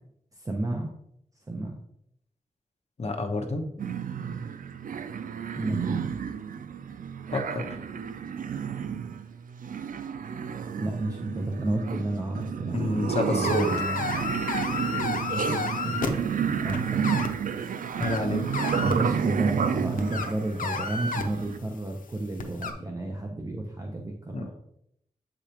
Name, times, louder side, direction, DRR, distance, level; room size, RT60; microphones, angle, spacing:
voice 1, 0.3-0.9 1.5-1.8 5.6-6.0 10.8-14.0 15.3-16.0 16.6-17.5 18.8-24.5, right 1 dB, 25° right, 1 dB, 0.7 m, -31 dB
voice 2, 3.0-3.6 7.3-7.6 12.7-13.7 18.0-18.4 24.3-24.5, left 2 dB, 50° left, 3 dB, 1.0 m, -29 dB
sound 1, 3.8-21.6, right 7 dB, 85° right, 0.4 m, -31 dB
sound 2, 13.4-16.1 16.7-17.3 18.0-18.9 20.0-21.2 22.4-22.7, left 5 dB, 80° left, 0.7 m, -31 dB
7.9 x 5.0 x 2.9 m, 0.75 s
wide cardioid pair, 115°, 14 cm